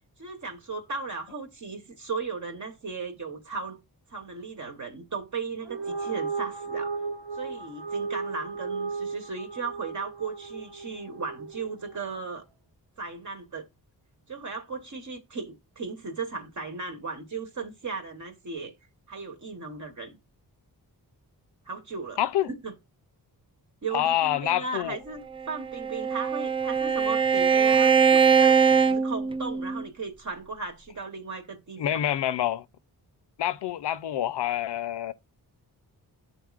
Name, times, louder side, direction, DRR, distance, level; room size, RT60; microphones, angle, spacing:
voice 1, 0.2-3.8 4.1-7.0 7.3-12.4 13.0-13.7 14.3-18.7 19.1-20.1 21.7-22.2 22.5-22.7 23.8-31.8, right 4 dB, 45° right, 1.1 m, -36 dB
sound 1, 5.6-12.2, right 4 dB, 70° right, 1.2 m, -35 dB
voice 2, 22.2-22.5 23.9-25.0 31.8-32.6 33.4-35.1, left 11 dB, 85° left, 0.6 m, -27 dB
Bowed string instrument, 25.4-29.9, right 6 dB, 15° right, 0.4 m, -22 dB
11.0 x 4.1 x 2.4 m
wide cardioid pair, 85°, 40 cm